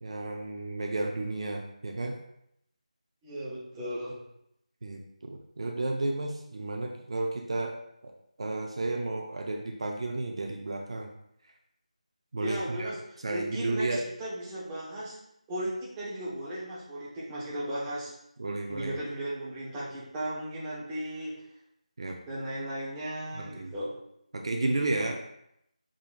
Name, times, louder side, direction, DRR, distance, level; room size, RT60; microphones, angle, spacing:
voice 1, 0.0-2.2 4.8-8.1 8.4-11.1 12.3-12.9 13.2-14.0 18.4-18.9 22.0-22.2 23.4-23.7 24.3-25.2, right 2 dB, 45° right, 2 dB, 0.5 m, -32 dB
voice 2, 3.2-4.2 12.4-13.0 13.3-15.2 15.5-18.1 18.7-21.3 22.3-23.9, right 1 dB, 10° right, -8 dB, 0.7 m, -36 dB
5.8 x 3.7 x 2.4 m, 0.77 s
figure-of-eight pair, 170°, 4 cm